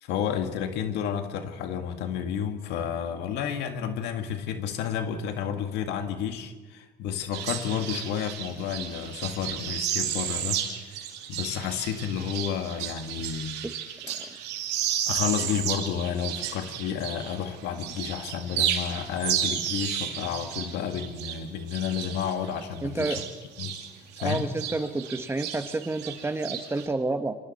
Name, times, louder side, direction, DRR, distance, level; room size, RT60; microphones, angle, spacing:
voice 1, 0.0-10.6 10.9-13.6 15.1-23.2 23.6-23.8 24.2-24.5, left 8 dB, 85° left, 7 dB, 1.9 m, -31 dB
sound 1, 7.3-17.5 17.8-23.9 24.1-26.9, right 10 dB, 90° right, 2.6 m, -33 dB
voice 2, 22.8-23.2 24.2-27.3, right 2 dB, 15° right, 9 dB, 1.3 m, -29 dB
28.0 x 25.0 x 4.3 m, 1.3 s
cardioid pair, 110°, 17 cm